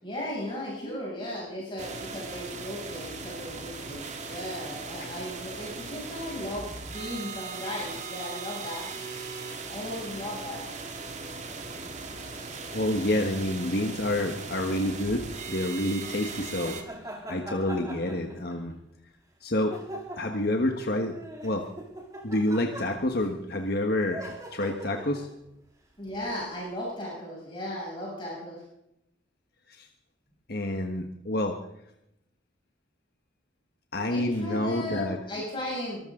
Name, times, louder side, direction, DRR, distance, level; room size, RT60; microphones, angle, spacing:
voice 1, 0.0-8.8 9.7-10.7 26.0-28.6 34.1-36.1, left 1 dB, 25° left, -5 dB, 7.1 m, -36 dB
sound 1, 1.8-16.8, right 4 dB, 40° right, 2.2 m, -39 dB
voice 2, 12.7-16.8 17.3-18.8 19.4-19.8 20.2-21.2 21.4-21.7 22.2-25.3 29.7-29.9 30.5-31.6 33.9-35.2, left 1 dB, 55° left, 3 dB, 1.5 m, -28 dB
sound 2, 15.1-15.2 16.6-18.7 19.7-20.5 21.0-23.3 24.1-25.3 26.2-26.5, right 1 dB, 20° right, 3.3 m, -42 dB
24.5 x 14.0 x 3.9 m, 0.80 s
head